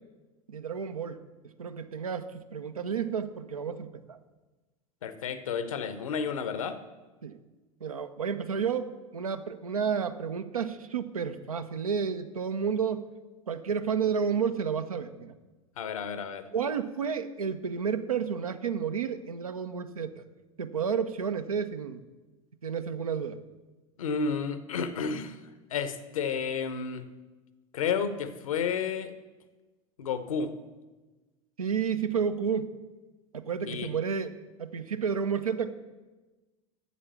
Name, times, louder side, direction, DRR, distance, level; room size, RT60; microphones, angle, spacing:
voice 1, 0.5-1.2 1.6-4.2 7.2-7.4 7.8-13.1 13.5-15.3 16.5-20.2 20.6-22.0 22.6-23.4 31.6-32.8 33.3-34.3 34.6-35.7, right 6 dB, 80° right, 10 dB, 0.6 m, -31 dB
voice 2, 5.0-6.8 15.8-16.5 24.0-27.1 27.7-29.1 30.0-30.6 33.6-33.9, left 6 dB, 70° left, 11 dB, 0.8 m, -31 dB
8.4 x 7.4 x 7.1 m, 1.2 s
figure-of-eight pair, 80°, 18 cm